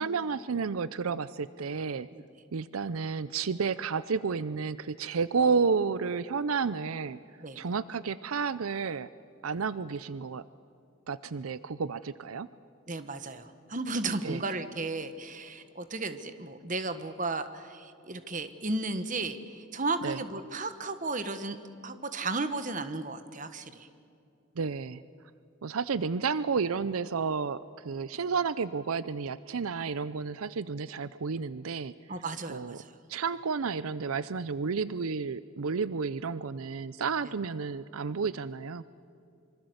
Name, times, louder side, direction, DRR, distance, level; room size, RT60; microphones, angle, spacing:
voice 1, 0.0-2.1 2.5-7.2 7.6-9.1 9.4-10.4 11.1-12.5 14.2-14.4 20.0-20.2 24.6-25.0 25.6-31.9 32.5-32.8 33.1-38.9, right 5 dB, 80° right, 16 dB, 0.6 m, -31 dB
voice 2, 12.9-21.6 21.8-23.9 32.1-32.9, right 3 dB, 35° right, 10 dB, 1.3 m, -34 dB
25.0 x 24.5 x 8.0 m, 2.6 s
head